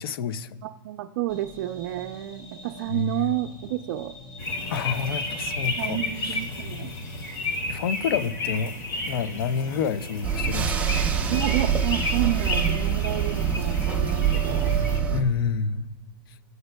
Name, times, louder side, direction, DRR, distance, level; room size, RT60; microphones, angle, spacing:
voice 1, 0.0-0.5 2.9-3.4 4.7-6.4 7.7-8.8 9.1-11.0 15.1-15.9, left 6 dB, 75° left, 15 dB, 0.5 m, -28 dB
voice 2, 0.6-4.1 5.8-6.9 11.3-14.7, right 14 dB, 60° right, 3 dB, 0.4 m, -30 dB
sound 1, 1.3-7.6, left 1 dB, 60° left, 1.9 m, -44 dB
sound 2, 4.4-15.0, left 2 dB, 35° left, 2.2 m, -32 dB
sound 3, 10.2-15.2, right 7 dB, 10° right, 0.8 m, -25 dB
18.5 x 7.9 x 2.2 m, 1.5 s
supercardioid pair, 140°, 12 cm